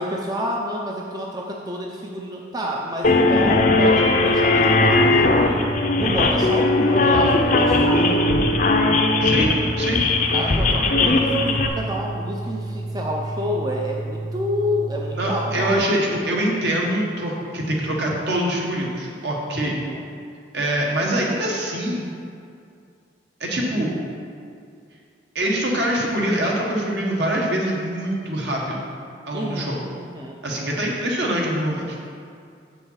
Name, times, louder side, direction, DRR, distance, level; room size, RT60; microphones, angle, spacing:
voice 1, 0.0-5.6 6.0-8.3 10.3-15.8 19.6-20.1 29.3-30.9, equal, 20° right, -1 dB, 0.5 m, -29 dB
sound 1, 3.0-11.7, left 2 dB, 45° left, 0.6 m, -18 dB
sound 2, 4.3-15.8, right 2 dB, 40° right, 1.0 m, -31 dB
voice 2, 9.2-10.0 15.2-19.8 20.5-22.0 23.4-24.0 25.3-28.9 29.3-29.8 30.4-32.0, right 1 dB, 65° right, -2 dB, 1.5 m, -24 dB
7.5 x 5.6 x 5.7 m, 2.3 s
head